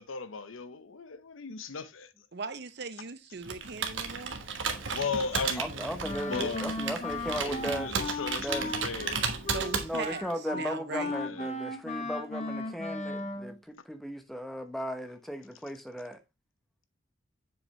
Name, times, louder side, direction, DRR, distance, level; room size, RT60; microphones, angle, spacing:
voice 1, 0.0-2.1 4.9-5.6 6.3-6.7 7.4-9.2 11.2-11.5, left 4 dB, 90° left, 0.8 m, -36 dB
voice 2, 2.3-4.4 9.5-10.2 10.5-11.1, right 4 dB, 55° right, 0.7 m, -39 dB
Computer keyboard, 3.4-10.3, right 5 dB, 70° right, 1.3 m, -34 dB
voice 3, 5.6-8.0 8.4-8.7 9.8-16.2, equal, ahead, 0.9 m, -36 dB
Wind instrument woodwind instrument, 6.0-13.6, left 2 dB, 35° left, 1.2 m, -36 dB
7.2 x 5.2 x 3.2 m
head